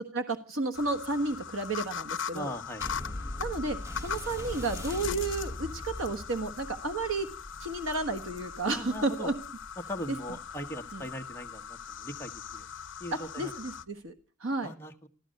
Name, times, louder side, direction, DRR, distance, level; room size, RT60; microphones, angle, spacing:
voice 1, 0.1-2.5 3.4-7.3 7.6-9.3 10.9-11.0 13.1-14.1 14.4-14.7, right 2 dB, 75° right, 7 dB, 1.4 m, -32 dB
sound 1, 0.7-13.8, left 7 dB, 60° left, 0.9 m, -41 dB
voice 2, 2.3-2.9 8.7-9.3 9.8-12.7 13.0-13.5 14.6-15.1, equal, 10° left, 2 dB, 1.3 m, -40 dB
sound 2, 2.8-11.6 12.3-12.4, left 1 dB, 15° right, 1.6 m, -42 dB
15.0 x 13.5 x 6.5 m, 0.38 s
head